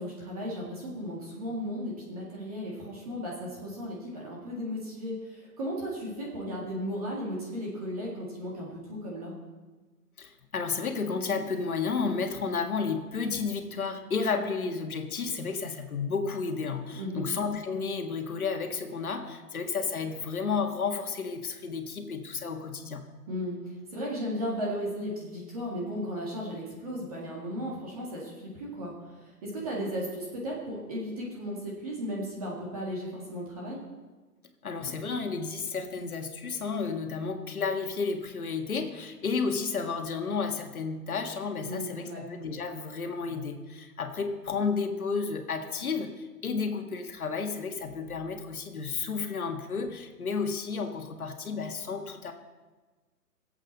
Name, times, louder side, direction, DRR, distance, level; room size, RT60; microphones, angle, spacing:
voice 1, 0.0-9.3 17.0-17.3 23.3-28.9 29.2-33.8 41.6-42.3, equal, 25° right, -4 dB, 1.9 m, -35 dB
voice 2, 10.2-23.0 34.6-52.3, left 5 dB, 65° left, 4 dB, 1.7 m, -32 dB
21.5 x 8.1 x 4.1 m, 1.3 s
hypercardioid pair, 175°, 46 cm